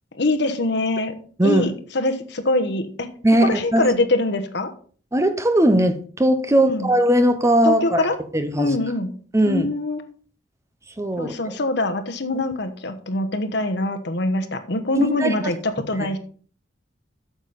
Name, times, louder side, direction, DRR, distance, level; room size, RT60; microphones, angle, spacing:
voice 1, 0.2-1.1 1.4-3.1 3.4-4.7 6.7-6.9 7.6-8.2 8.6-9.1 9.5-10.0 11.2-16.2, left 2 dB, 65° left, 7 dB, 1.1 m, -23 dB
voice 2, 3.2-3.9 5.1-8.1 8.3-8.8 9.3-9.7 11.0-11.5 14.9-15.5 16.0-16.1, right 1 dB, 15° right, 8 dB, 0.8 m, -19 dB
8.8 x 7.0 x 4.1 m, 0.43 s
head